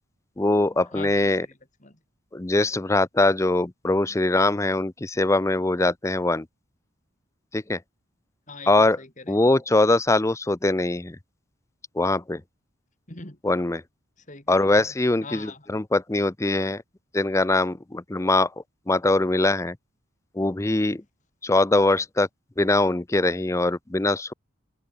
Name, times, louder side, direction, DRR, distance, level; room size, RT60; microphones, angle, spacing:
voice 1, 0.4-1.5 2.3-6.5 7.5-7.8 8.7-9.0 9.3-11.2 12.0-12.4 13.4-13.8 14.5-16.8 17.1-18.5 18.9-19.8 20.4-21.0 21.4-22.3 22.6-24.3, left 2 dB, 15° left, 0.5 m, -22 dB
voice 2, 0.9-2.0 8.5-9.4 13.1-13.4 14.3-14.8 15.2-15.7, left 3 dB, 40° left, 3.9 m, -42 dB
open air
head